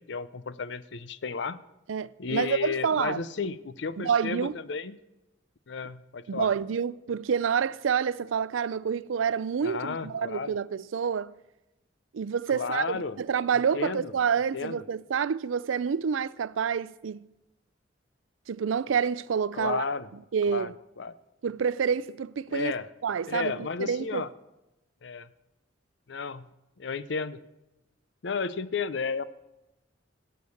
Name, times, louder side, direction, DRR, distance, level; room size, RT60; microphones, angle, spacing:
voice 1, 0.0-1.6 2.2-5.0 5.7-6.5 9.6-10.5 12.5-13.2 13.7-14.1 14.5-14.8 19.5-20.1 20.5-20.7 21.0-21.1 22.5-22.9 23.3-24.3 25.0-25.3 26.1-26.5 26.8-27.4 28.2-29.2, left 5 dB, 65° left, 0.6 m, -33 dB
voice 2, 1.9-3.2 4.0-4.5 6.3-11.3 12.1-17.3 18.5-19.8 20.3-20.7 21.4-22.7 23.0-24.2, right 7 dB, 90° right, 0.4 m, -28 dB
17.0 x 6.7 x 7.0 m
head